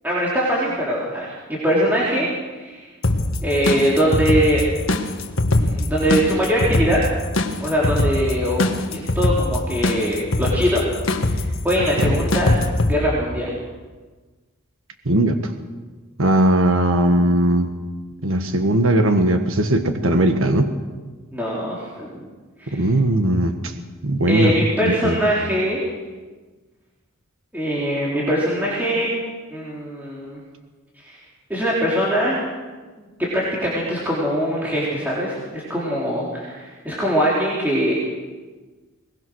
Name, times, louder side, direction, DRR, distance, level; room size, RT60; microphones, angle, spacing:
voice 1, 0.0-2.9 3.4-4.6 5.6-7.0 7.6-10.8 11.3-13.5 21.3-22.3 22.6-22.9 24.3-25.8 27.5-29.1 29.5-30.4 31.0-31.2 31.5-32.4 33.0-33.1 33.3-37.9, equal, 10° right, -6 dB, 3.8 m, -22 dB
sound 1, 3.0-12.9, left 2 dB, 70° left, 1.7 m, -22 dB
voice 2, 15.0-15.5 16.2-17.7 18.2-20.7 22.7-23.7 24.0-24.5 24.8-25.2, right 1 dB, 70° right, 6 dB, 1.5 m, -18 dB
22.5 x 20.0 x 6.4 m, 1.3 s
head